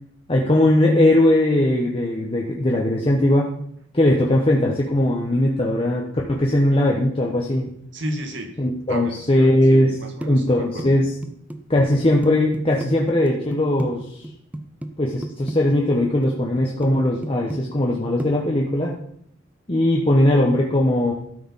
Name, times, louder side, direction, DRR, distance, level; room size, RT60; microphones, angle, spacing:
voice 1, 0.3-3.5 3.9-6.0 6.3-7.6 8.6-9.9 10.3-11.1 11.7-14.0 15.0-19.0 19.7-21.1, left 1 dB, 30° left, -2 dB, 1.1 m, -19 dB
voice 2, 7.9-8.6 8.9-11.0, right 1 dB, 65° right, 4 dB, 1.7 m, -33 dB
sound 1, 10.2-13.9 14.2-14.9 15.2-16.3 16.6-16.9 17.2-17.9 18.2-18.3, right 1 dB, 10° right, 0.7 m, -31 dB
13.0 x 4.8 x 5.6 m, 0.68 s
head